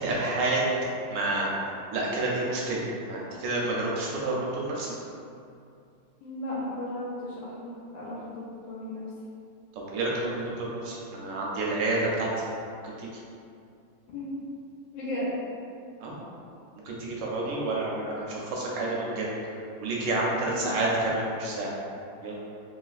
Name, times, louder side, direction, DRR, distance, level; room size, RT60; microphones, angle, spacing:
voice 1, 0.0-0.6 1.1-1.5 1.9-2.8 3.1-4.9 9.9-12.4 12.8-13.1 16.0-16.1 16.8-19.3 19.8-21.7 22.2-22.4, right 2 dB, 75° right, -4 dB, 1.1 m, -29 dB
voice 2, 6.2-9.0 14.1-14.3 14.9-15.3 20.3-20.9, left 1 dB, 75° left, -6 dB, 1.4 m, -35 dB
3.1 x 2.9 x 2.4 m, 2.5 s
omnidirectional pair, 2.3 m